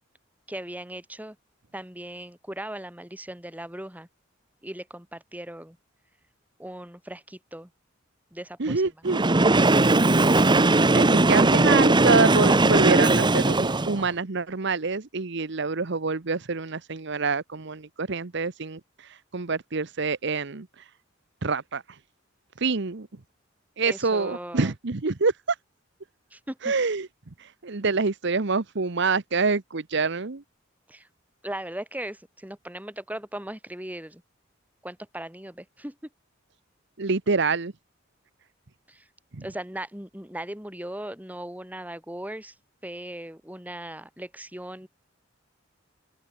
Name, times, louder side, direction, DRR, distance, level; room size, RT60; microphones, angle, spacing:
voice 1, 0.5-1.4 1.7-4.1 4.6-5.8 6.6-7.7 8.3-9.0 23.9-24.7 26.3-26.7 30.9-31.1 31.4-34.2 34.8-36.0 38.9-39.1 39.4-42.5 42.8-44.9, right 1 dB, 10° right, 4.6 m, -38 dB
voice 2, 8.6-9.3 10.9-20.7 21.4-21.8 22.6-23.1 23.8-25.3 26.6-27.1 27.4-30.4 37.0-37.7 39.3-39.4, right 4 dB, 65° right, 1.0 m, -26 dB
Train, 9.1-14.1, right 2 dB, 25° right, 1.0 m, -19 dB
open air
head